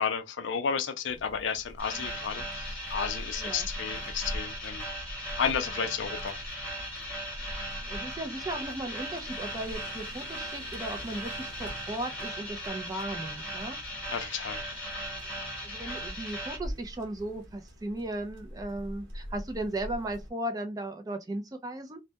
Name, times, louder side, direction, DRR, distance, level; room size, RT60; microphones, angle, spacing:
voice 1, 0.0-4.8 5.4-6.4 14.1-14.6 15.9-16.0, left 6 dB, 70° left, 0.4 m, -32 dB
sound 1, 1.0-20.3, equal, 75° right, 0.9 m, -44 dB
sound 2, 1.8-16.6, equal, 10° left, 1.0 m, -38 dB
voice 2, 7.9-13.8 15.6-22.0, right 1 dB, 20° right, 0.4 m, -36 dB
2.2 x 2.1 x 2.7 m
head